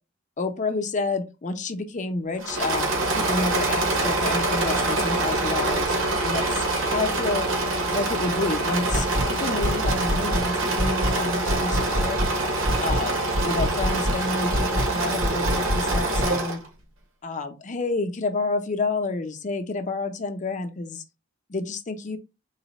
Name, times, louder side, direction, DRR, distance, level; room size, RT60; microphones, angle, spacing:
voice 1, 0.4-2.9 3.1-5.9 6.2-6.7 6.9-7.5 7.9-12.2 12.8-13.1 13.4-16.6 17.2-21.0 21.5-22.2, left 3 dB, 40° left, 0.6 m, -29 dB
Engine / Mechanisms, 2.4-16.7, right 2 dB, 70° right, 1.1 m, -25 dB
sound 1, 8.9-9.3 9.6-10.5 10.8-11.2 11.5-12.4 12.7-13.1 13.4-14.2 14.5-14.9 15.2-16.3, equal, 30° right, 0.6 m, -26 dB
4.0 x 2.2 x 4.0 m
head